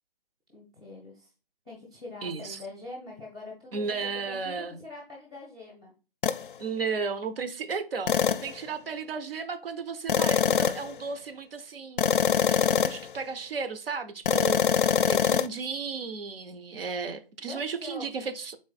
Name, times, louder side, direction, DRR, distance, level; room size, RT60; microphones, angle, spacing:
voice 1, 0.5-1.3 1.6-5.9 17.5-18.3, left 2 dB, 10° right, 0.4 m, -44 dB
voice 2, 2.2-2.6 3.7-4.8 6.6-18.6, right 5 dB, 70° right, 0.7 m, -34 dB
sound 1, 6.2-6.4 8.1-8.5 10.1-10.9 12.0-13.1 14.3-15.5, left 7 dB, 60° left, 0.4 m, -24 dB
3.9 x 3.1 x 4.0 m
figure-of-eight pair, 150°, 30 cm